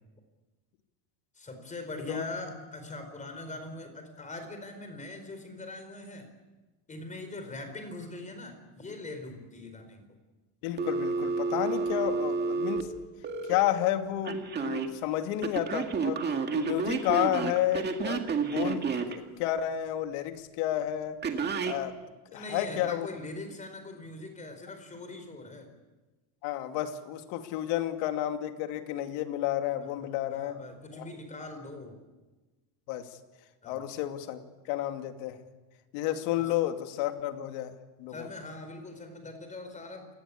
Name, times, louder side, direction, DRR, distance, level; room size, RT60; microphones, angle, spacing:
voice 1, 1.3-6.3 6.9-10.0 22.3-25.7 29.8-32.0 33.6-33.8 36.3-36.5 38.1-40.1, left 2 dB, 15° left, 7 dB, 4.7 m, -42 dB
voice 2, 10.6-12.9 13.5-16.2 16.6-18.9 19.4-21.2 21.6-22.0 22.3-23.1 26.4-30.6 30.9-31.1 32.9-33.1 33.6-34.4 34.7-35.4 35.9-38.3, left 12 dB, 65° left, 6 dB, 2.5 m, -31 dB
Telephone, 10.8-13.5 14.2-14.9 15.4-19.2 21.2-21.8, right 4 dB, 20° right, 2.1 m, -30 dB
28.5 x 19.0 x 8.6 m, 1.2 s
cardioid pair, 155°, 47 cm